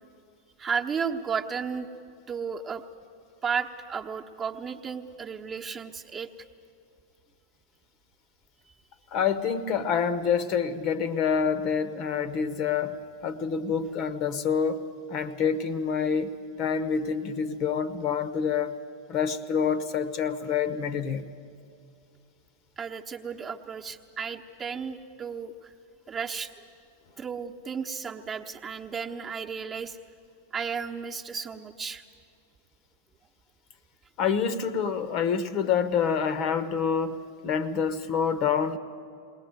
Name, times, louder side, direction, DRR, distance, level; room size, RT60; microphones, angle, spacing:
voice 1, 0.6-1.9 2.3-2.8 3.4-6.3 22.8-25.7 26.1-26.5 27.2-30.0 30.5-32.0, right 6 dB, 20° right, 3 dB, 1.1 m, -33 dB
voice 2, 9.1-13.0 13.2-14.8 15.1-16.3 16.6-18.7 19.1-21.2 34.2-38.8, left 6 dB, 40° left, 14 dB, 1.0 m, -27 dB
21.0 x 19.0 x 9.3 m, 2.5 s
figure-of-eight pair, 90°, 0 cm